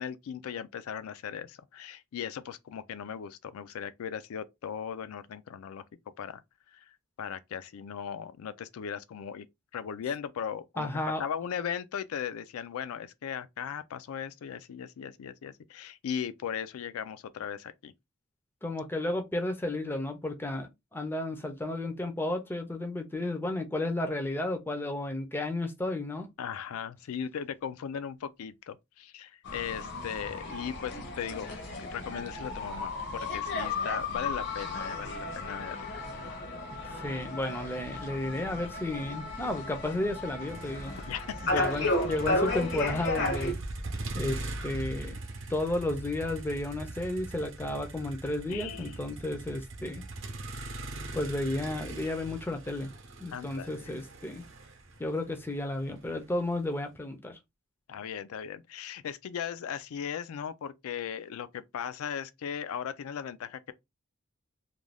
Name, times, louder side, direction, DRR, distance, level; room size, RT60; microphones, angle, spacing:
voice 1, 0.0-5.8 6.2-6.4 6.7-6.8 7.2-9.5 9.7-10.9 11.2-17.9 26.4-35.9 41.1-41.5 41.8-41.9 48.5-49.0 53.3-53.9 57.9-63.7, left 8 dB, 80° left, 0.3 m, -38 dB
voice 2, 10.8-11.2 18.6-26.3 37.0-40.9 41.4-43.6 44.1-45.2 45.5-50.0 51.1-52.9 53.2-54.4 55.0-57.4, left 1 dB, 10° left, 0.4 m, -33 dB
sound 1, 29.5-43.5, left 2 dB, 55° left, 0.7 m, -34 dB
Motor vehicle (road), 40.5-56.6, right 2 dB, 60° right, 0.7 m, -41 dB
2.5 x 2.2 x 3.2 m
head